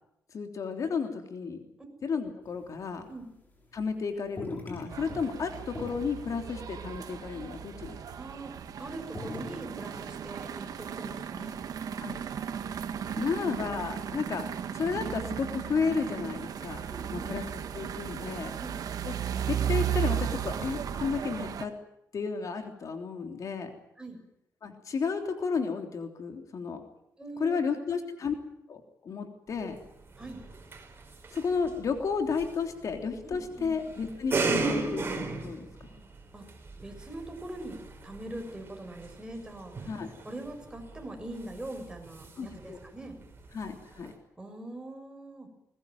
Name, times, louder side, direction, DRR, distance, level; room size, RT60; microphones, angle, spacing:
voice 1, 0.3-1.6 2.0-3.1 3.7-8.0 12.0-12.2 13.2-14.5 14.7-16.8 17.1-17.5 17.7-18.6 19.0-19.1 19.4-21.7 22.1-23.8 24.6-26.8 27.4-28.4 28.7-29.8 31.3-35.9 39.9-40.1 42.4-42.8 43.5-44.1, left 5 dB, 60° left, 5 dB, 3.4 m, -32 dB
sound 1, 2.5-3.1 3.4-4.0 4.3-5.3 5.7-8.6 8.9-9.7, left 2 dB, 25° left, 7.4 m, -42 dB
sound 2, 4.9-21.7, right 9 dB, 70° right, 1.8 m, -35 dB
voice 2, 8.1-8.5 8.8-11.6 13.2-13.5 16.9-17.4 18.6-18.7 24.0-24.2 27.2-27.7 30.2-30.4 33.2-33.7 36.3-36.4 36.8-39.7 40.2-43.2 44.4-45.5, right 1 dB, 10° right, 4 dB, 6.6 m, -42 dB
sound 3, 29.5-44.1, right 3 dB, 35° right, 5.7 m, -38 dB
21.5 x 20.5 x 9.3 m, 0.78 s
cardioid pair, 110°, 6 cm